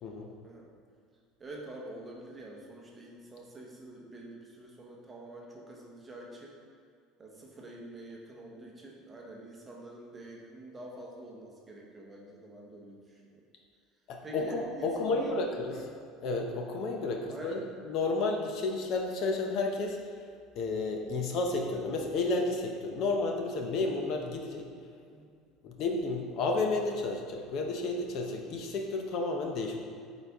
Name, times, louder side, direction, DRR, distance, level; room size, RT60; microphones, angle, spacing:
voice 1, 0.0-0.3 14.1-15.7 16.2-20.0 20.6-24.7 25.6-29.8, left 3 dB, 50° left, 2 dB, 0.6 m, -31 dB
voice 2, 1.4-6.6 7.2-13.4 14.2-15.4 15.7-15.9 17.3-17.7 25.1-25.3, right 1 dB, 15° right, -1 dB, 0.9 m, -46 dB
8.0 x 4.1 x 3.5 m, 2.2 s
cardioid pair, 150°, 0 cm